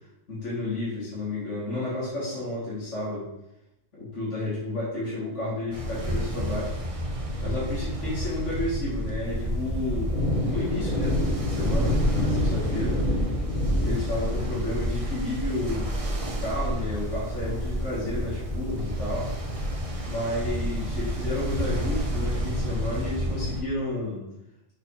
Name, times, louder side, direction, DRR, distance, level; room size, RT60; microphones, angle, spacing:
voice 1, 0.3-3.3 3.9-6.7 7.4-10.1 10.4-13.0 13.7-16.0 16.2-19.3 20.0-24.2, left 2 dB, 60° left, -8 dB, 2.9 m, -31 dB
Ocean, 5.7-23.6, equal, 30° right, 0.8 m, -31 dB
Thunder, 9.3-22.0, equal, 85° left, 2.7 m, -29 dB
6.5 x 4.1 x 4.1 m, 0.85 s
omnidirectional pair, 1.4 m